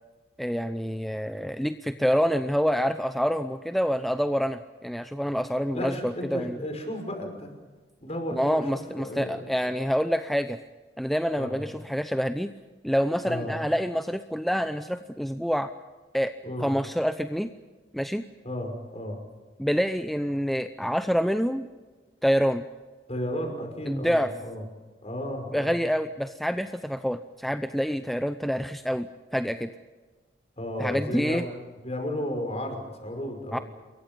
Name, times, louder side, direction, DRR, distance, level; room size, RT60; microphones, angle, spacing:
voice 1, 0.4-6.6 8.3-10.6 11.0-12.5 12.8-15.7 16.1-16.3 16.6-17.5 17.9-18.2 19.6-21.7 22.2-22.6 23.9-24.3 25.5-29.1 29.3-29.7 30.8-31.5 33.5-33.6, equal, ahead, 9 dB, 0.7 m, -27 dB
voice 2, 5.7-7.5 8.0-8.6 9.0-9.7 11.4-11.7 13.2-13.5 16.4-16.7 18.4-19.2 23.1-24.6 25.0-25.7 30.6-31.5 31.8-33.6, equal, 35° left, 5 dB, 5.6 m, -33 dB
28.5 x 23.0 x 5.4 m, 1.3 s
head